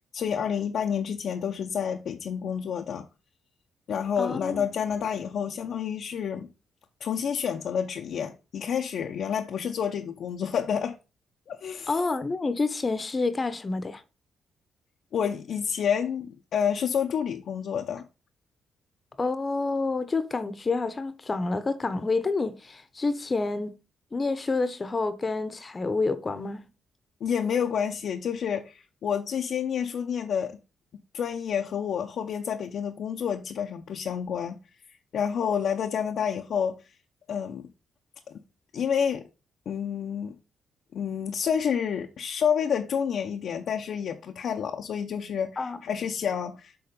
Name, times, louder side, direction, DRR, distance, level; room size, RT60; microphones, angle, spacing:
voice 1, 0.1-3.1 3.9-6.5 7.0-11.0 11.5-11.9 15.1-18.1 27.2-30.6 31.1-34.6 35.1-36.8 37.3-37.7 38.3-38.4 38.7-39.2 39.7-40.3 40.9-46.7, left 7 dB, 70° left, 0.7 m, -29 dB
voice 2, 4.2-4.7 11.9-14.0 19.2-23.7 24.1-26.7 45.6-45.8, left 3 dB, 30° left, 0.9 m, -28 dB
6.9 x 3.7 x 5.3 m
cardioid pair, 80°, 0 cm